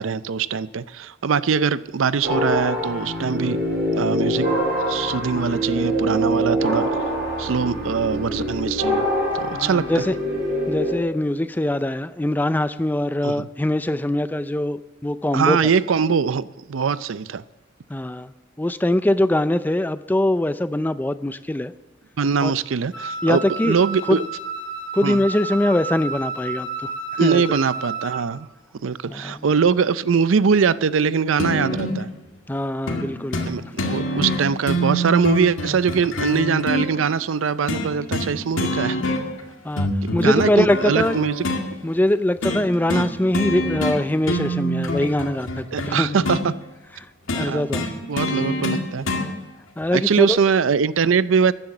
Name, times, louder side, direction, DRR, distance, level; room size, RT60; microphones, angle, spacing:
voice 1, 0.0-3.6 3.9-4.5 4.9-6.9 7.4-9.1 9.3-10.0 13.2-13.5 15.3-17.4 22.2-24.2 25.0-25.2 27.2-28.5 28.8-32.1 33.4-39.0 40.0-41.5 42.9-43.1 45.7-46.6 47.4-47.7 48.1-49.1 49.9-51.5, right 6 dB, 75° right, 17 dB, 0.5 m, -22 dB
sound 1, 2.2-11.0, equal, 50° right, 4.7 m, -24 dB
voice 2, 9.5-10.1 10.7-15.6 17.9-18.3 18.6-21.7 22.4-22.5 23.2-23.8 24.1-24.2 24.9-26.9 27.2-27.4 29.1-29.4 32.5-33.4 39.6-41.2 41.8-45.6 46.0-46.1 47.3-47.8 49.8-50.4, left 1 dB, 10° left, 13 dB, 0.4 m, -22 dB
Wind instrument woodwind instrument, 22.9-28.3, right 3 dB, 65° left, 2.0 m, -31 dB
sound 2, 31.4-32.0 32.9-33.1 33.3-33.5 33.8-36.9 37.7-38.3 38.6-39.4 39.8-41.6 42.4-42.6 42.9-43.1 43.3-44.0 44.2-46.5 47.3-49.3 50.3-50.4, left 1 dB, 80° left, 2.1 m, -25 dB
14.0 x 9.9 x 7.1 m, 1.1 s
head